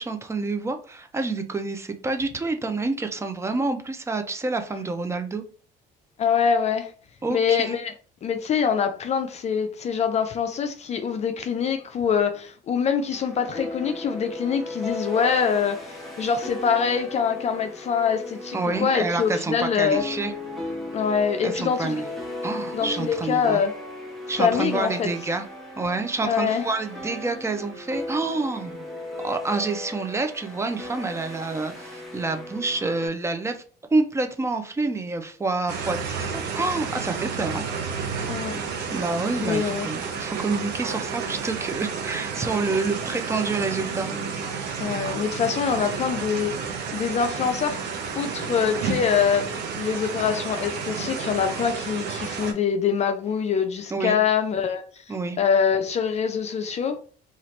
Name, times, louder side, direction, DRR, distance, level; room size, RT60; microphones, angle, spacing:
voice 1, 0.0-5.4 7.2-7.8 18.5-20.3 21.4-22.0 22.4-23.6 24.3-25.5 25.8-28.9 29.2-33.6 33.9-37.6 38.5-38.6 38.9-44.1 53.9-54.2 55.1-55.4, right 3 dB, 15° right, 0.5 m, -28 dB
voice 2, 6.2-6.9 7.3-7.9 8.2-20.0 20.9-22.0 22.7-23.7 24.4-25.1 26.2-26.6 38.3-38.6 39.4-39.9 44.8-46.6 46.9-47.8 48.1-54.8 55.4-57.0, left 7 dB, 40° left, 0.4 m, -24 dB
sound 1, 13.1-33.1, left 2 dB, ahead, 0.9 m, -36 dB
sound 2, 35.7-52.5, right 5 dB, 85° right, 0.7 m, -31 dB
2.8 x 2.4 x 3.1 m
cardioid pair, 110°, 17 cm